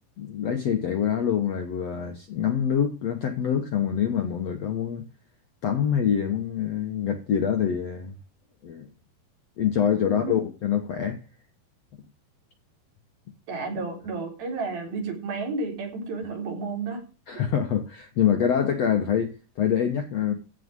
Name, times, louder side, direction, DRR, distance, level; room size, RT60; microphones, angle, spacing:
voice 1, 0.2-5.0 5.6-8.1 8.6-8.9 9.6-11.2 17.3-20.3, left 8 dB, 65° left, 1.7 m, -25 dB
voice 2, 13.5-17.0, right 4 dB, 65° right, 5.6 m, -31 dB
15.0 x 5.1 x 8.2 m
omnidirectional pair, 4.6 m